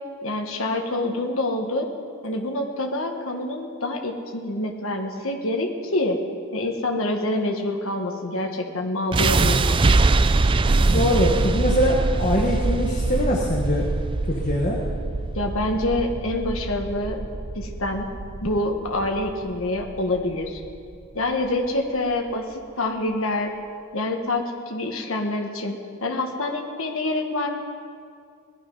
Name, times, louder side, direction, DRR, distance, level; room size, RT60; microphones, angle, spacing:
voice 1, 0.2-1.9 2.2-6.2 6.5-9.9 15.3-17.2 17.5-18.1 18.4-20.6 21.1-23.5 23.9-27.5, left 2 dB, 70° left, 2 dB, 1.4 m, -26 dB
sound 1, 9.1-21.2, right 3 dB, 25° right, 0.3 m, -23 dB
voice 2, 10.7-13.9 14.3-14.9, left 1 dB, 35° left, -1 dB, 1.3 m, -23 dB
18.5 x 11.5 x 5.4 m, 2.2 s
head